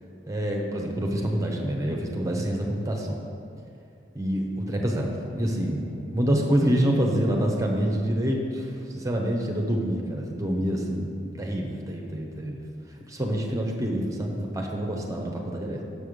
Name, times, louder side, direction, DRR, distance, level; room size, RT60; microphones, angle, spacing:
voice 1, 0.3-3.2 4.1-5.9 6.1-12.6 13.1-15.8, equal, 20° right, 0 dB, 0.9 m, -27 dB
7.0 x 5.6 x 6.7 m, 2.5 s
head